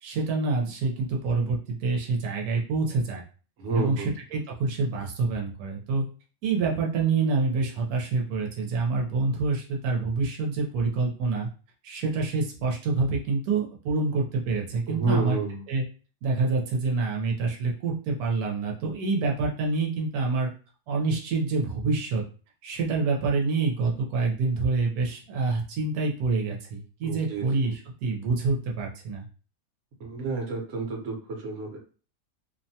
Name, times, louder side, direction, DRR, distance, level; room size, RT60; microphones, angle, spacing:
voice 1, 0.0-3.2 3.7-4.0 4.3-6.0 6.4-11.5 11.8-15.4 15.7-15.8 16.2-20.5 20.9-22.2 22.6-29.3, right 3 dB, 85° right, 0 dB, 1.1 m, -27 dB
voice 2, 3.6-4.1 14.9-15.6 27.0-27.5 30.0-31.8, right 3 dB, 60° right, 0 dB, 1.1 m, -29 dB
2.8 x 2.1 x 2.7 m, 0.38 s
omnidirectional pair, 1.5 m